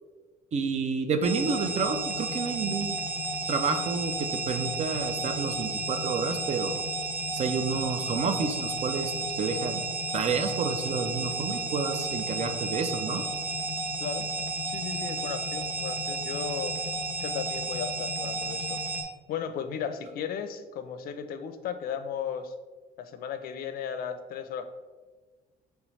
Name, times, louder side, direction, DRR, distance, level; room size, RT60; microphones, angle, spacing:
voice 1, 0.5-3.0 3.5-6.8 7.3-9.8 10.1-13.2, right 5 dB, 40° right, 7 dB, 0.5 m, -30 dB
sound 1, 1.2-19.0, right 2 dB, 15° right, 1.1 m, -32 dB
voice 2, 14.7-16.7 17.2-18.8 19.3-22.5 23.0-24.6, left 7 dB, 60° left, 9 dB, 0.5 m, -35 dB
4.8 x 3.2 x 3.1 m, 1.3 s
cardioid pair, 110°, 17 cm